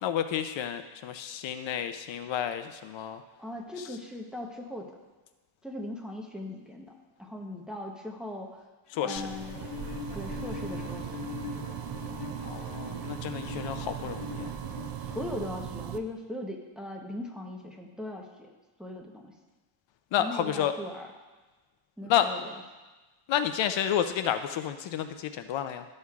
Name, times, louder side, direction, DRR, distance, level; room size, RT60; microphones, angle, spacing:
voice 1, 0.0-3.2 3.8-3.9 8.9-9.3 12.4-14.5 20.1-20.7 22.0-22.3 23.3-25.9, left 10 dB, 65° left, 9 dB, 0.5 m, -30 dB
voice 2, 3.4-4.9 5.6-6.9 7.2-8.6 9.0-9.7 10.1-11.3 12.1-12.2 15.1-18.3 18.8-19.3 20.2-21.1 22.0-22.5, left 1 dB, ahead, 0 dB, 0.8 m, -39 dB
Bowed string instrument, 8.9-15.5, left 5 dB, 85° left, 1.2 m, -41 dB
sound 1, 9.1-16.0, right 10 dB, 50° right, 0.4 m, -39 dB
12.5 x 6.4 x 2.4 m, 1.2 s
cardioid pair, 140°, 50 cm